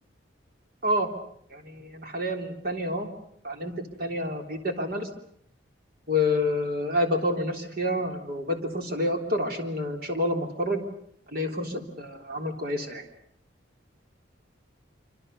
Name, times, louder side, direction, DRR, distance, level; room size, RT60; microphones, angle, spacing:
voice 1, 1.5-3.1 3.4-3.7 4.0-5.1 6.1-10.8 11.3-13.0, left 1 dB, 50° right, 4 dB, 3.5 m, -28 dB
26.0 x 26.0 x 6.8 m, 0.67 s
head